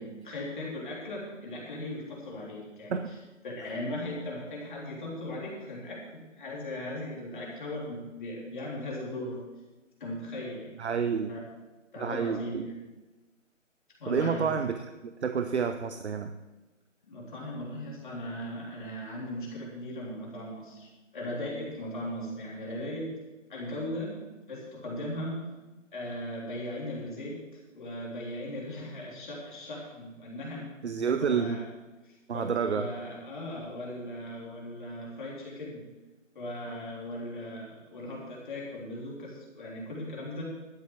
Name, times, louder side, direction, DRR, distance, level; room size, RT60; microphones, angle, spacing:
voice 1, 0.0-3.2 3.4-9.4 10.0-10.7 11.3-11.4 11.9-12.8 14.0-14.5 17.0-23.1 23.5-24.2 24.5-25.4 25.9-30.7 31.2-31.7 32.0-35.9 36.4-40.4, left 1 dB, 40° left, -4 dB, 3.4 m, -38 dB
voice 2, 10.8-11.3 12.0-12.7 14.1-16.3 30.8-31.6 32.3-32.9, right 6 dB, 60° right, 9 dB, 0.8 m, -29 dB
12.5 x 7.3 x 7.2 m, 1.1 s
figure-of-eight pair, 155°, 38 cm